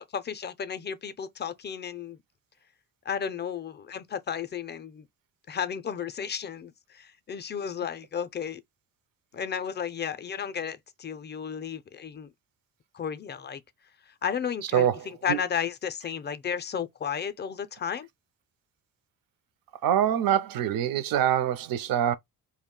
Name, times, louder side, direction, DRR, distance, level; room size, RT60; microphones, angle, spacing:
voice 1, 0.0-2.2 3.1-5.1 5.5-8.6 9.3-12.3 12.9-13.6 14.2-18.1, left 7 dB, 30° left, 0.4 m, -33 dB
voice 2, 14.7-15.4 19.8-22.2, right 10 dB, 65° right, 0.5 m, -25 dB
2.3 x 2.1 x 3.7 m
cardioid pair, 115°, 38 cm